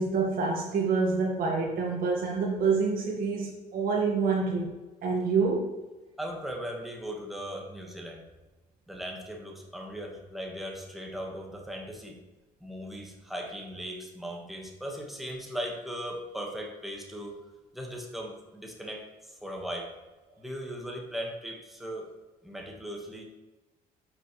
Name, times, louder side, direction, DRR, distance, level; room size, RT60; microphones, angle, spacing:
voice 1, 0.0-4.8 5.0-5.7, right 4 dB, 55° right, -2 dB, 1.7 m, -27 dB
voice 2, 6.2-8.2 8.9-12.2 12.6-17.4 17.7-19.9 20.4-22.1 22.4-23.2, equal, ahead, 0 dB, 1.4 m, -38 dB
9.9 x 6.0 x 3.2 m, 1.1 s
cardioid pair, 110°, 17 cm